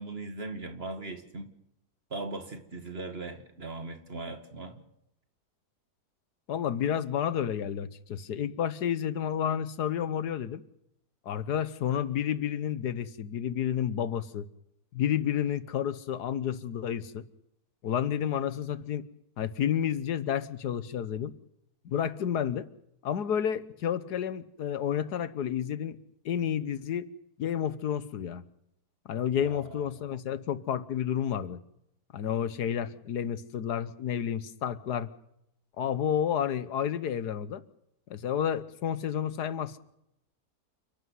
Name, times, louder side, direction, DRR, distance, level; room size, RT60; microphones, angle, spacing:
voice 1, 0.0-1.5 2.1-4.8 29.4-29.8, right 2 dB, 40° right, 8 dB, 2.3 m, -39 dB
voice 2, 6.5-10.6 11.2-14.5 14.9-17.2 17.8-19.1 19.4-21.3 21.8-22.7 23.0-26.0 26.2-27.0 27.4-28.4 29.0-31.6 32.1-35.1 35.8-37.6 38.1-39.8, left 9 dB, 85° left, 15 dB, 1.6 m, -30 dB
29.5 x 11.5 x 9.5 m, 0.79 s
omnidirectional pair, 1.7 m